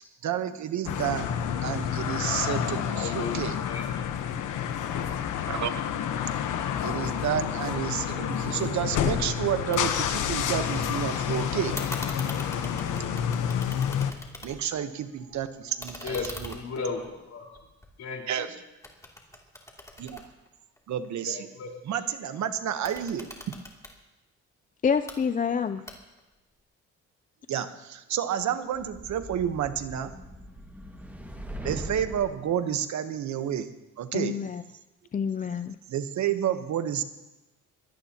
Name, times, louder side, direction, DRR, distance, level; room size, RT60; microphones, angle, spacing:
voice 1, 0.2-1.3 1.6-3.6 5.5-5.8 6.8-11.8 14.4-16.5 18.3-18.5 20.0-20.3 20.9-21.5 21.8-23.6 27.5-30.1 31.6-33.7 34.0-34.4 35.9-37.0, right 9 dB, 70° right, 10 dB, 1.1 m, -30 dB
traffic jupiter carport, 0.8-14.1, left 8 dB, 80° left, 1.1 m, -29 dB
voice 2, 2.9-3.9 16.0-17.5 18.0-18.5 21.3-21.7, left 4 dB, 65° left, 0 dB, 4.5 m, -35 dB
sound 1, 9.7-9.8 10.1-10.9 11.7-14.8 15.2-18.4 18.8-21.1 22.7-24.0 24.8-25.2 25.9-26.3, left 1 dB, 10° left, 2.8 m, -42 dB
voice 3, 24.8-25.8 34.1-34.6 35.1-35.8, left 6 dB, 25° left, 11 dB, 0.5 m, -27 dB
sound 2, 28.7-32.4, right 1 dB, 5° right, 1.9 m, -40 dB
21.5 x 17.0 x 2.9 m, 1.0 s
cardioid pair, 90°, 30 cm